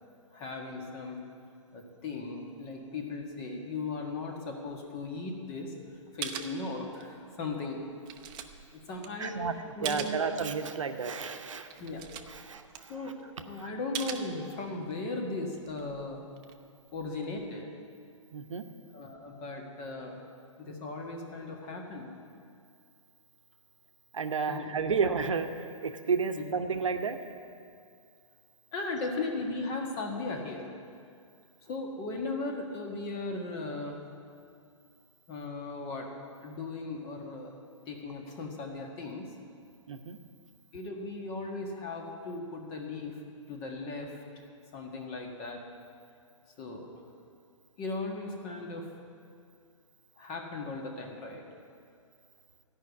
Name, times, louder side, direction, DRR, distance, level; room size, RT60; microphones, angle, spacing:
voice 1, 0.3-1.2 1.7-5.7 6.1-7.8 8.7-9.4 9.7-10.2 11.8-12.1 12.9-13.2 13.5-16.2 16.9-17.7 18.9-20.2 20.6-22.1 24.5-24.8 26.3-26.4 28.7-30.7 31.6-34.0 35.3-36.1 36.4-37.5 37.9-39.3 40.7-43.2 43.5-44.2 44.7-45.6 46.6-46.9 47.8-48.9 50.2-51.5, left 3 dB, 35° left, 2 dB, 1.7 m, -37 dB
sound 1, 5.9-6.0 6.2-7.2 7.6-10.3 10.7-10.8 11.3-11.4 11.6-13.4 13.9-14.9 15.4-17.6, right 9 dB, 25° right, 0.7 m, -42 dB
voice 2, 9.2-9.5 9.8-11.7 12.3-12.6 18.3-18.6 24.1-25.5 25.8-27.2 39.9-40.2, right 5 dB, 75° right, 7 dB, 0.8 m, -31 dB
14.5 x 5.7 x 8.3 m, 2.4 s
figure-of-eight pair, 115°, 16 cm